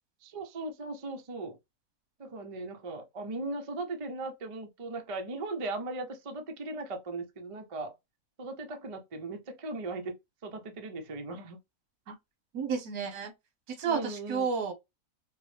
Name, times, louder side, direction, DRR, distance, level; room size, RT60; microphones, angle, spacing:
voice 1, 0.2-1.6 2.2-7.9 8.4-10.2 10.4-11.6 13.8-14.5, right 2 dB, 60° right, 0.3 m, -38 dB
voice 2, 12.5-13.3 13.7-14.7, right 6 dB, 90° right, 1.4 m, -31 dB
4.6 x 2.0 x 3.2 m
omnidirectional pair, 1.5 m